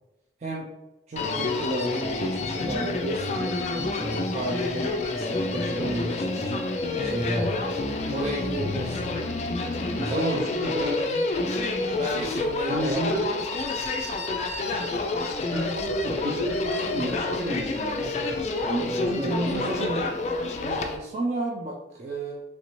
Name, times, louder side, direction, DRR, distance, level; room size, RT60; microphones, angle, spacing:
voice 1, 1.1-3.6 4.0-6.6 7.0-7.6 8.1-9.2 10.0-10.4 10.7-10.9 11.8-13.0 18.7-20.1 20.6-22.4, right 1 dB, 40° right, -3 dB, 0.4 m, -32 dB
Human voice, 1.2-21.0, left 2 dB, 40° left, 0.3 m, -28 dB
voice 2, 10.1-11.2 12.7-13.3 15.5-19.9, equal, 70° right, 0 dB, 0.8 m, -31 dB
3.2 x 2.7 x 3.0 m, 0.97 s
head